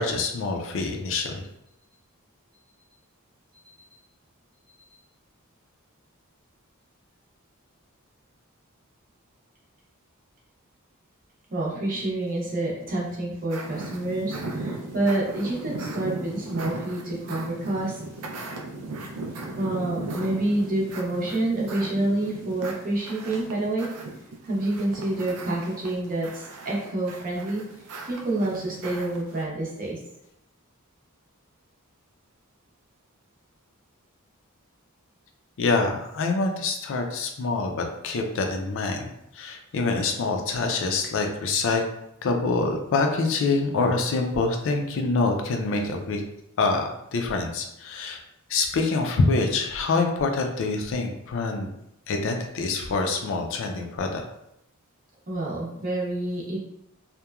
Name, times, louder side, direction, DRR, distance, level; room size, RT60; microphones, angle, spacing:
voice 1, 0.0-1.4 35.6-41.8 42.2-46.2 46.6-48.2 48.5-51.7 52.1-54.2, left 3 dB, 60° left, 3 dB, 0.4 m, -26 dB
voice 2, 11.5-18.0 19.6-23.9 24.4-27.6 28.1-30.0 55.3-56.6, right 2 dB, 40° right, -4 dB, 0.7 m, -28 dB
sound 1, 13.5-29.4, right 2 dB, 90° right, 0.4 m, -37 dB
2.9 x 2.1 x 2.3 m, 0.82 s
head